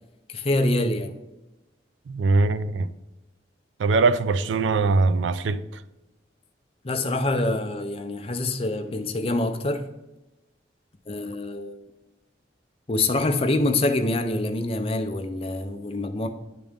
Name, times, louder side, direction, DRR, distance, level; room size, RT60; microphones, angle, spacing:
voice 1, 0.3-1.2 6.8-9.8 11.1-11.8 12.9-16.3, left 2 dB, 30° left, 0.5 m, -25 dB
voice 2, 2.1-2.9 3.8-5.6, right 3 dB, 90° right, 0.4 m, -21 dB
9.7 x 3.8 x 3.6 m
head